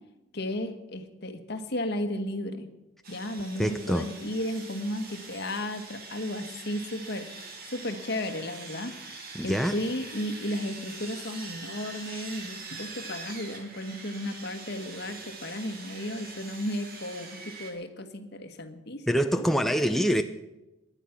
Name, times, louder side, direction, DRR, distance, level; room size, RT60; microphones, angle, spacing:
voice 1, 0.3-2.7 3.1-7.3 7.6-8.9 9.4-19.4, left 1 dB, 55° left, 8 dB, 1.5 m, -34 dB
Sawing, 3.0-17.7, right 3 dB, 45° right, 2.8 m, -43 dB
voice 2, 3.6-4.1 9.3-9.7 19.1-20.2, equal, ahead, 6 dB, 0.5 m, -25 dB
18.5 x 11.5 x 5.9 m, 0.99 s
head